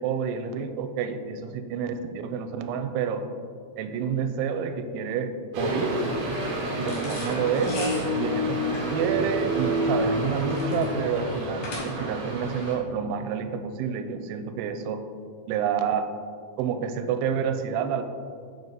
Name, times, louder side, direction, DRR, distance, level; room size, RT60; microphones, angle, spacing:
voice 1, 0.0-3.2 3.8-6.0 6.8-15.0 15.5-16.1 16.6-18.0, right 7 dB, 85° right, 7 dB, 2.5 m, -29 dB
sound 1, 5.5-12.7, right 1 dB, 65° right, 1.7 m, -28 dB
sound 2, 6.8-12.2, left 2 dB, 60° left, 2.4 m, -40 dB
6.9 x 4.9 x 4.0 m, 2.1 s
omnidirectional pair, 4.6 m